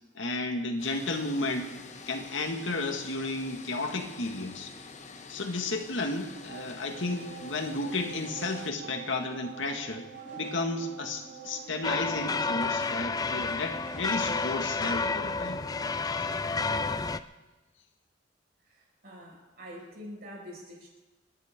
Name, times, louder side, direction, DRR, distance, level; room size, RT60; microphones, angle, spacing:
voice 1, 0.1-1.7 2.1-4.7 5.3-10.1 10.4-15.6 16.2-16.3, left 2 dB, 75° left, 3 dB, 2.0 m, -33 dB
sound 1, 0.8-8.7, left 4 dB, 35° left, 1.1 m, -47 dB
sound 2, 6.5-14.8, right 5 dB, 85° right, 5.7 m, -46 dB
sound 3, 11.8-17.2, left 4 dB, 20° left, 0.4 m, -30 dB
voice 2, 18.6-20.9, equal, 50° right, -2 dB, 5.8 m, -45 dB
29.5 x 11.0 x 3.8 m, 1.1 s
head